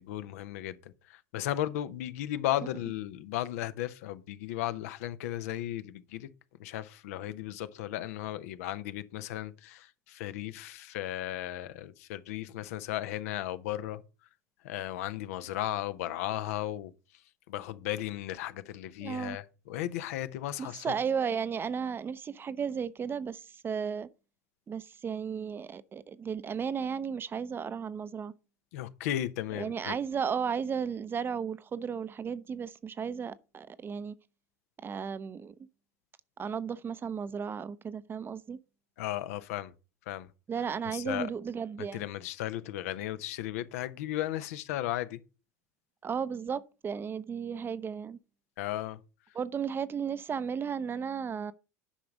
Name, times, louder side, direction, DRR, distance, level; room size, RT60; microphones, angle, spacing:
voice 1, 0.0-6.3 6.6-14.0 14.6-17.2 17.5-20.9 28.7-30.0 39.0-39.7 40.1-40.3 40.9-41.3 41.8-45.2 48.6-49.0, left 13 dB, 65° left, 0.8 m, -35 dB
voice 2, 19.0-19.4 20.6-24.1 24.7-28.3 29.5-34.1 34.8-35.5 36.4-38.6 40.5-42.0 46.0-48.2 49.3-51.5, right 6 dB, 25° right, 0.7 m, -34 dB
10.0 x 5.9 x 5.2 m
hypercardioid pair, 80°, 9 cm